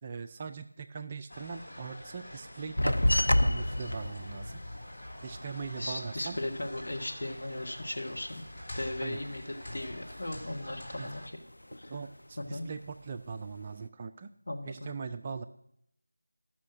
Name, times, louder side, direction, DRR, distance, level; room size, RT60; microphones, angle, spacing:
voice 1, 0.0-4.6 5.2-6.4 9.0-9.2 11.0-11.1 11.9-14.3 14.7-15.4, right 5 dB, 20° right, 8 dB, 0.4 m, -41 dB
sound 1, 1.3-11.3, left 1 dB, 35° left, 2.4 m, -46 dB
sound 2, 2.8-7.7 8.0-9.4 9.7-10.6 10.9-12.2 12.6-13.3, left 1 dB, 75° left, 0.5 m, -31 dB
voice 2, 5.8-8.4 8.7-11.2 11.7-11.9 12.5-12.7 14.5-14.9, left 1 dB, 50° left, 2 dB, 1.3 m, -37 dB
13.0 x 6.2 x 6.2 m, 0.74 s
figure-of-eight pair, 170°, 0 cm